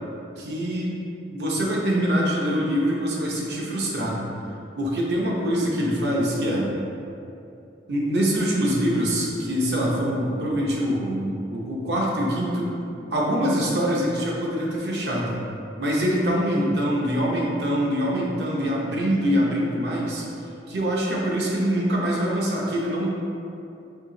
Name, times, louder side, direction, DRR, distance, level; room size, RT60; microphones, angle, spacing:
voice 1, 0.4-1.0 1.3-4.3 4.8-6.7 7.9-12.8 13.1-15.4 15.8-20.2 20.7-23.1, equal, 70° right, -3 dB, 0.8 m, -24 dB
4.8 x 2.7 x 3.8 m, 2.7 s
head